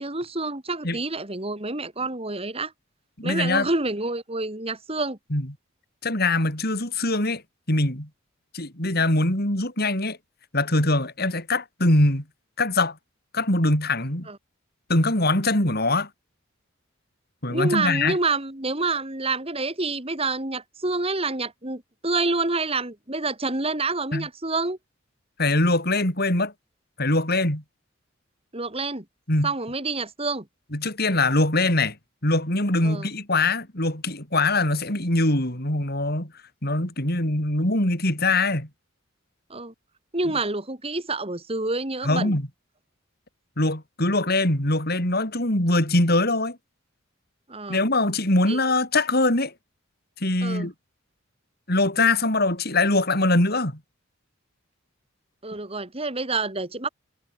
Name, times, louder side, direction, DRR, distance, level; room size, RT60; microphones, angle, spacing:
voice 1, 0.0-2.7 3.2-5.2 14.3-14.4 17.5-24.8 28.5-29.0 29.4-30.4 32.8-33.1 39.5-39.7 40.1-42.3 47.5-47.8 48.5-48.6 50.4-50.7 55.4-56.9, right 3 dB, 30° right, 3.4 m, -28 dB
voice 2, 3.2-3.7 5.3-5.5 6.0-7.4 7.7-8.1 8.5-10.2 10.5-12.2 12.6-13.0 13.3-14.3 14.9-16.1 17.4-18.2 24.1-24.3 25.4-26.5 27.0-27.6 29.3-29.5 30.7-32.0 32.2-36.3 36.6-38.7 42.0-42.4 43.6-46.6 47.7-49.5 50.2-50.7 51.7-53.7, left 2 dB, 50° left, 6.0 m, -22 dB
head